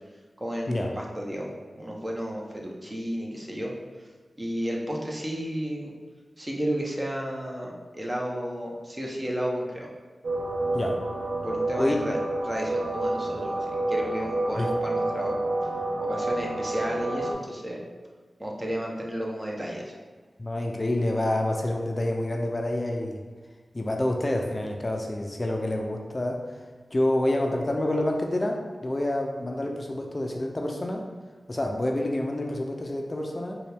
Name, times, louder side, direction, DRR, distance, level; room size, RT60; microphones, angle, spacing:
voice 1, 0.4-3.7 4.4-5.9 6.4-9.9 11.4-15.4 16.0-17.8 18.4-19.9, equal, 25° right, -2 dB, 0.8 m, -32 dB
sound 1, 10.2-17.3, right 2 dB, 60° right, 0.9 m, -29 dB
voice 2, 20.4-23.2 23.7-26.6 26.9-31.0 31.5-33.6, left 1 dB, 35° left, 1 dB, 0.4 m, -28 dB
4.0 x 2.3 x 3.4 m, 1.4 s
cardioid pair, 40°, 0 cm